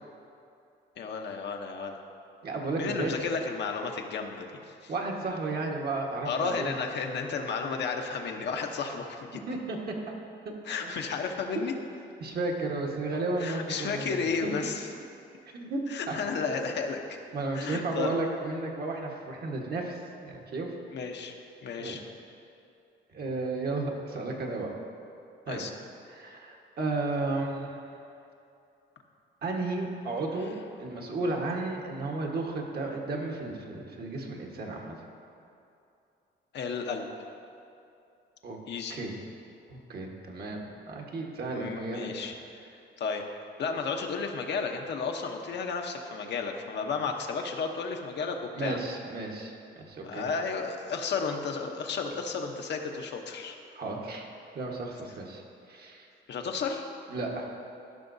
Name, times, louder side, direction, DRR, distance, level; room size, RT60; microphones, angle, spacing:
voice 1, 1.0-2.0 2.8-4.5 4.8-4.9 6.2-9.4 10.6-11.7 13.4-14.9 15.9-17.2 17.5-18.2 20.9-21.3 21.6-22.0 25.5-25.7 36.5-37.0 38.7-39.0 41.5-42.4 43.0-43.2 43.6-48.8 50.0-53.6 56.3-56.8, left 5 dB, 60° left, 3 dB, 0.8 m, -33 dB
voice 2, 2.4-3.1 4.9-6.7 9.5-9.9 10.7-10.9 12.2-14.3 15.5-15.8 16.1-16.2 17.3-20.7 21.8-22.0 23.1-24.7 25.5-25.6 26.1-27.8 29.4-34.9 38.4-38.6 38.9-39.1 39.7-42.1 48.5-50.2 53.7-54.3 54.5-55.4 55.7-56.1 57.1-57.5, right 3 dB, 55° right, 0 dB, 1.3 m, -33 dB
14.5 x 5.9 x 2.6 m, 2.6 s
cardioid pair, 90°, 20 cm